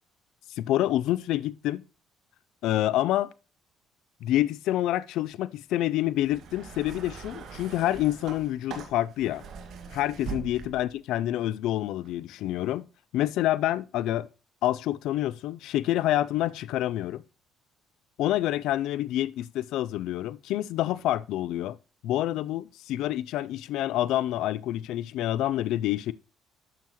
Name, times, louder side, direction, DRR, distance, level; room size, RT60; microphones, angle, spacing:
voice 1, 0.5-1.8 2.6-3.3 4.2-9.4 9.9-12.8 13.1-14.3 14.6-17.2 18.2-21.8 22.0-26.1, left 14 dB, 75° left, 0.4 m, -27 dB
sound 1, 6.2-11.0 12.0-12.1, right 5 dB, 65° right, 1.8 m, -42 dB
11.5 x 7.0 x 3.0 m
cardioid pair, 105°, 0 cm